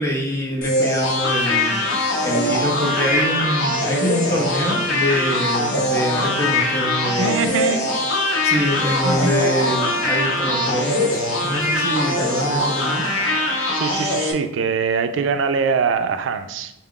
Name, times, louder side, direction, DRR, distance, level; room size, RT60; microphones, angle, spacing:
voice 1, 0.0-7.3 8.4-13.0, equal, 15° left, -2 dB, 0.7 m, -24 dB
sound 1, 0.6-14.3, left 1 dB, 80° left, 0.8 m, -22 dB
voice 2, 7.2-7.9 9.0-9.3 13.7-16.7, right 5 dB, 75° right, 8 dB, 0.3 m, -22 dB
4.1 x 2.3 x 3.7 m, 0.81 s
head